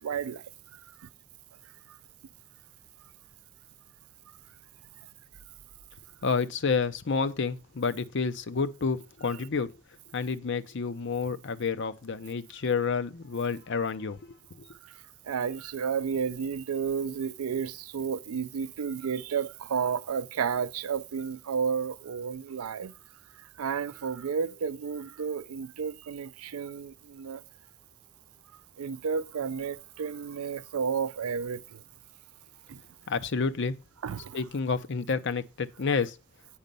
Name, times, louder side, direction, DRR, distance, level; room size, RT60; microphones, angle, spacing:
voice 1, 0.0-0.4 0.7-1.1 1.9-2.0 5.0-5.1 14.8-22.9 23.4-27.4 28.8-31.8 32.7-32.8 34.0-34.4, right 6 dB, 80° right, 0.4 m, -32 dB
voice 2, 6.2-9.7 10.1-14.2 33.1-33.7 34.3-36.2, left 5 dB, 55° left, 0.6 m, -29 dB
8.7 x 5.2 x 5.3 m
head